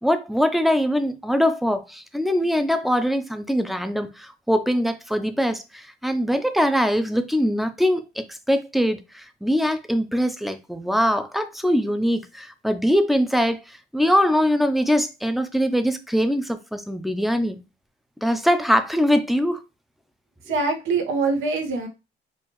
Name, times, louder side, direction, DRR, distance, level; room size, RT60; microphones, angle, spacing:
voice 1, 0.0-17.6 18.2-19.6, equal, ahead, 0.5 m, -22 dB
voice 2, 20.5-21.9, right 3 dB, 80° right, 1.0 m, -24 dB
4.4 x 2.4 x 3.0 m
cardioid pair, 90°, 20 cm